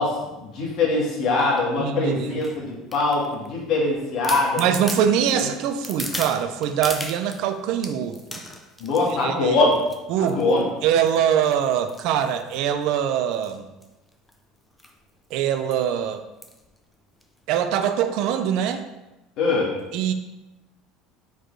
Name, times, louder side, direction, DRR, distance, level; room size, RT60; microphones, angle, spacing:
voice 1, 0.0-4.6 5.3-5.4 8.8-9.8 10.2-10.6 19.4-19.7, left 3 dB, 45° left, -5 dB, 1.7 m, -22 dB
sound 1, 1.4-1.7 2.4-3.5 3.9-4.0 4.2-7.4 7.8-9.2 9.7-10.0 10.3-10.6 11.1-12.8 13.3-13.6 13.8-13.9 14.1-14.3 14.8-15.0 15.3-15.4 16.4-16.7 17.2-17.3, left 1 dB, 5° left, 0.4 m, -36 dB
voice 2, 1.8-2.4 4.6-8.4 9.2-9.6 10.1-10.5 10.8-13.7 15.3-16.2 17.5-18.8 19.9-20.1, right 9 dB, 55° right, 9 dB, 0.5 m, -23 dB
4.7 x 4.5 x 4.5 m, 1.0 s
cardioid pair, 170°, 0 cm